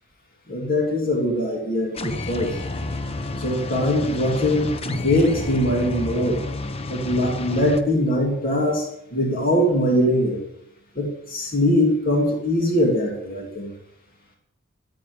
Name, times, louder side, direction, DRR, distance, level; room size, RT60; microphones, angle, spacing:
voice 1, 0.5-2.6 3.4-6.4 6.9-10.4 10.9-13.7, left 1 dB, 45° left, 0 dB, 3.1 m, -22 dB
sound 1, 1.9-7.8, left 2 dB, 30° left, 0.9 m, -30 dB
14.5 x 8.5 x 8.7 m, 0.79 s
head